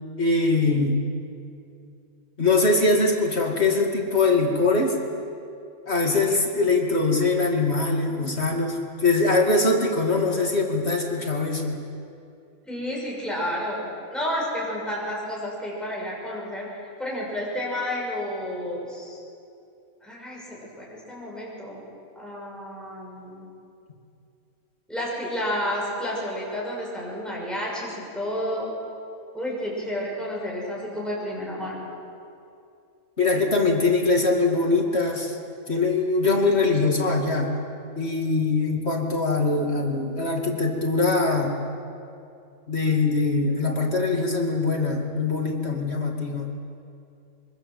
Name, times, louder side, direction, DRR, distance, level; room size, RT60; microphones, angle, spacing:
voice 1, 0.2-1.0 2.4-5.0 5.9-11.8 33.2-35.4 35.7-37.5 38.0-41.6 42.7-46.5, left 3 dB, 45° left, 1 dB, 2.7 m, -22 dB
voice 2, 12.7-16.7 17.0-19.2 20.0-21.8 22.2-23.5 24.9-28.7 29.3-31.8, equal, ahead, -4 dB, 6.1 m, -31 dB
26.0 x 24.0 x 7.6 m, 2.5 s
omnidirectional pair, 1.5 m